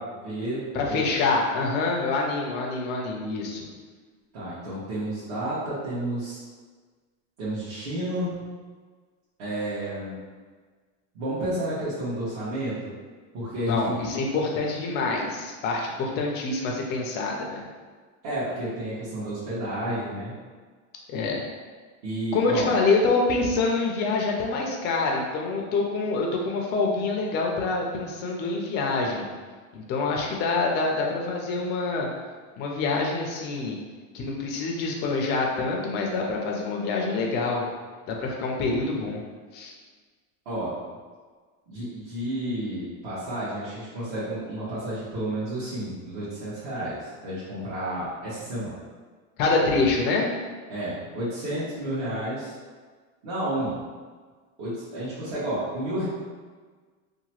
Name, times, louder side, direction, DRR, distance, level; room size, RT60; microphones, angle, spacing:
voice 1, 0.0-1.0 4.3-6.4 7.4-8.4 9.4-10.2 11.1-12.9 13.3-13.9 18.2-20.3 22.0-22.7 40.4-40.7 41.7-48.8 50.7-52.5 53.2-53.7 54.6-56.1, right 1 dB, 60° right, -13 dB, 1.2 m, -31 dB
voice 2, 0.7-3.7 13.7-17.6 21.1-21.4 22.3-29.3 29.7-32.1 32.6-33.8 34.1-37.7 38.1-39.2 39.5-39.7 49.4-50.3, left 3 dB, 30° left, 0 dB, 0.4 m, -26 dB
2.9 x 2.2 x 2.9 m, 1.5 s
supercardioid pair, 150°, 37 cm